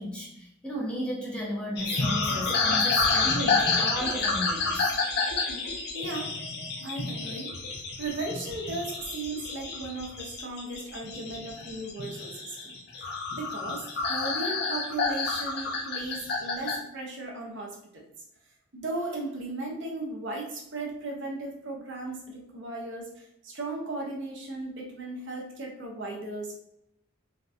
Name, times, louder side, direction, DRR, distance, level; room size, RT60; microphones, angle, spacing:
voice 1, 0.0-4.9, equal, 5° left, -5 dB, 0.7 m, -34 dB
sound 1, 1.8-16.8, left 4 dB, 50° left, 0.5 m, -29 dB
voice 2, 5.9-6.3 6.8-7.5 8.0-12.8 13.3-18.0 18.7-26.6, right 2 dB, 60° right, -1 dB, 0.7 m, -36 dB
3.4 x 2.2 x 2.6 m, 0.77 s
head